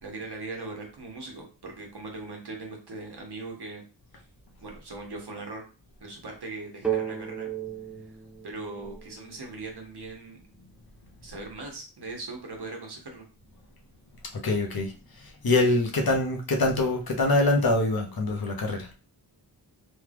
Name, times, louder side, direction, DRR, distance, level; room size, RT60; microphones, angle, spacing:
voice 1, 0.0-3.8 4.6-5.6 6.0-7.5 8.4-10.4 11.2-13.3, right 3 dB, 60° right, 1.1 m, -40 dB
sound 1, 6.8-10.5, right 9 dB, ahead, 0.4 m, -35 dB
voice 2, 14.3-14.9 15.2-18.9, left 2 dB, 55° left, 0.9 m, -24 dB
3.1 x 2.4 x 3.4 m
wide cardioid pair, 65°, 44 cm